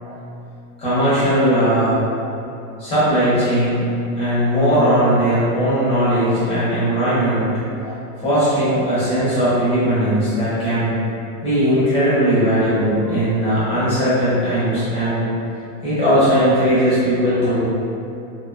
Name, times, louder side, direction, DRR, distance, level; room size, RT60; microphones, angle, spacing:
voice 1, 0.8-2.3 2.8-3.9 4.2-7.5 7.8-10.9 11.4-15.3 15.8-17.7, equal, 15° left, -12 dB, 0.6 m, -18 dB
2.6 x 2.3 x 2.3 m, 2.7 s
supercardioid pair, 155°, 47 cm